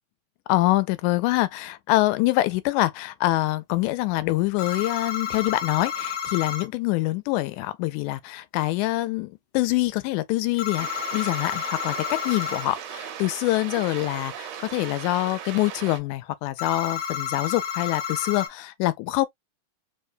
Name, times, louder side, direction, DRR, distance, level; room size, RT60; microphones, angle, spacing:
voice 1, 0.5-19.3, left 17 dB, 85° left, 2.0 m, -25 dB
sound 1, 4.6-6.7 10.6-12.7 16.6-18.5, left 8 dB, 70° left, 1.2 m, -31 dB
sound 2, 10.8-16.0, right 9 dB, 70° right, 1.7 m, -37 dB
4.8 x 2.2 x 2.4 m
omnidirectional pair, 3.4 m